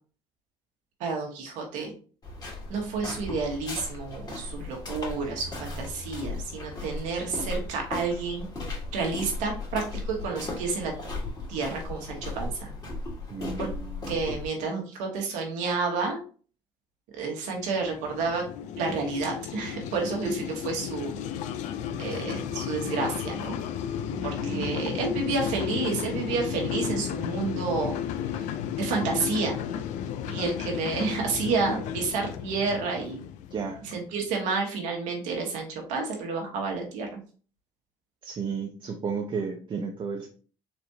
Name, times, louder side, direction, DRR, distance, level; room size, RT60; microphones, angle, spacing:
voice 1, 1.0-1.9 2.7-8.5 8.9-10.9 11.5-12.7 13.6-13.7 14.1-16.2 17.2-18.4 18.8-21.2 22.0-23.6 24.2-28.0 28.3-28.5 28.7-29.6 30.3-33.2 33.8-37.2, right 4 dB, 75° right, 1 dB, 1.5 m, -30 dB
sound 1, 2.2-14.5, left 2 dB, 30° left, 2.1 m, -36 dB
voice 2, 13.3-14.0 24.1-25.0 33.5-33.8 38.2-40.3, right 5 dB, 40° right, 3 dB, 0.7 m, -33 dB
sound 2, 17.5-34.1, left 9 dB, 70° left, 0.5 m, -33 dB
4.3 x 3.3 x 2.8 m, 0.40 s
supercardioid pair, 80°, 13 cm